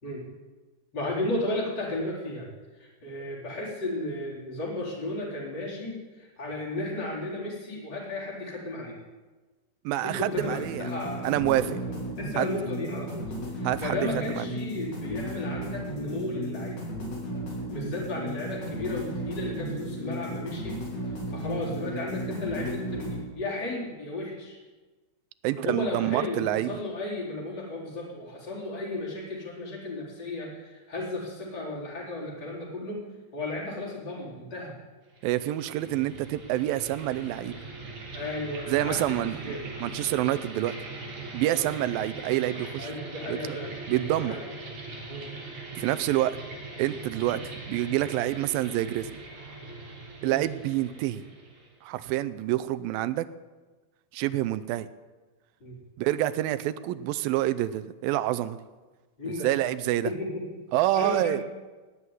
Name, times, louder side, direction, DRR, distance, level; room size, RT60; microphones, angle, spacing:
voice 1, 0.9-2.5 2.8-9.0 10.0-11.3 11.6-11.7 12.2-16.8 17.7-20.8 21.1-24.6 25.5-33.0 33.3-34.7 38.1-39.6 41.5-41.7 42.8-43.7 44.2-44.4 45.1-45.3 50.2-50.4 55.6-55.8 59.2-59.5 60.0-60.6 60.9-61.4, left 2 dB, 25° left, -4 dB, 4.2 m, -34 dB
voice 2, 9.9-10.9 11.2-11.8 12.4-12.5 13.6-14.0 14.3-14.5 25.4-26.8 35.2-37.6 38.7-39.6 39.8-40.8 41.3-42.9 43.3-43.6 43.9-44.4 45.8-46.4 46.8-47.4 47.7-49.1 50.2-51.2 51.8-53.3 54.1-54.9 56.0-58.6 59.3-60.1 60.7-61.4, right 14 dB, 80° right, 13 dB, 2.2 m, -27 dB
sound 1, 10.3-23.2, right 1 dB, 80° left, 6.8 m, -35 dB
sound 2, 35.1-51.8, right 3 dB, 55° right, 4.1 m, -41 dB
18.5 x 6.3 x 9.6 m, 1.3 s
omnidirectional pair, 4.5 m